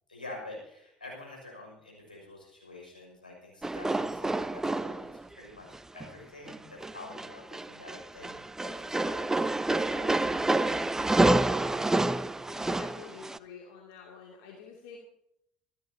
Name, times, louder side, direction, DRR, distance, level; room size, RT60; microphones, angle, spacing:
voice 1, 0.1-5.7 5.9-11.1, left 2 dB, 85° left, -2 dB, 6.1 m, -47 dB
sound 1, 3.6-5.3 5.7-6.1 6.5-13.4, right 2 dB, 10° right, 0.7 m, -28 dB
voice 2, 12.4-15.0, left 6 dB, 60° left, 0 dB, 2.6 m, -48 dB
26.5 x 12.5 x 2.8 m, 0.75 s
figure-of-eight pair, 60°, 5 cm